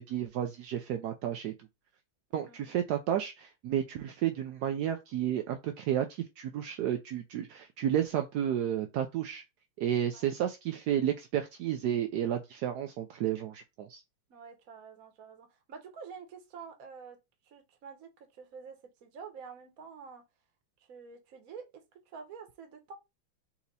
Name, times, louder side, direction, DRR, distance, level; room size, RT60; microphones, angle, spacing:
voice 1, 0.0-1.5 2.3-9.4 9.8-14.0, right 10 dB, 75° right, 0.9 m, -32 dB
voice 2, 2.4-2.8 10.1-10.3 14.3-17.2 17.5-20.2 20.9-22.9, right 6 dB, 50° right, 1.3 m, -48 dB
4.3 x 2.8 x 4.0 m
omnidirectional pair, 2.3 m